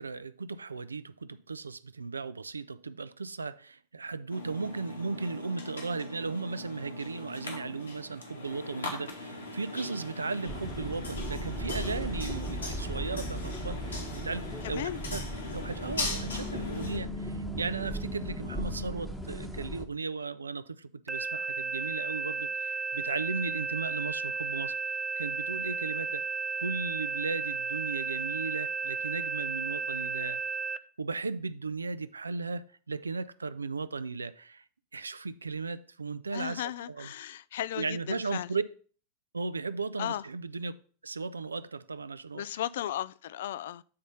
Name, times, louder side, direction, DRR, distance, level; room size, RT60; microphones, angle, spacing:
voice 1, 0.0-15.3 15.5-24.7 25.2-26.3 26.6-30.4 31.0-34.6 34.9-36.6 36.9-37.1 37.8-38.6 39.3-40.8 41.0-42.4, right 4 dB, 75° right, 0.4 m, -36 dB
sound 1, 4.3-17.0, left 2 dB, 75° left, 2.1 m, -40 dB
sound 2, 10.5-19.9, equal, 5° left, 1.0 m, -37 dB
voice 2, 14.6-15.0 15.4-15.6 36.3-38.5 40.0-40.2 42.3-43.8, left 12 dB, 60° left, 0.3 m, -35 dB
sound 3, 21.1-30.8, right 4 dB, 15° right, 0.4 m, -33 dB
8.5 x 4.1 x 5.4 m
figure-of-eight pair, 90°, 0 cm